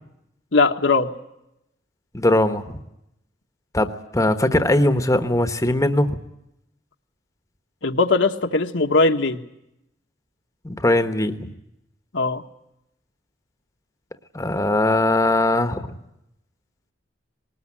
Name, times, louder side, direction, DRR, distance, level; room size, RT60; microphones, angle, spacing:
voice 1, 0.5-1.1 7.8-9.4 12.1-12.4, left 3 dB, 70° left, 4 dB, 1.4 m, -19 dB
voice 2, 2.1-2.6 3.7-6.2 10.6-11.5 14.3-15.9, left 1 dB, 15° left, 9 dB, 1.2 m, -20 dB
20.5 x 19.5 x 9.8 m, 0.84 s
head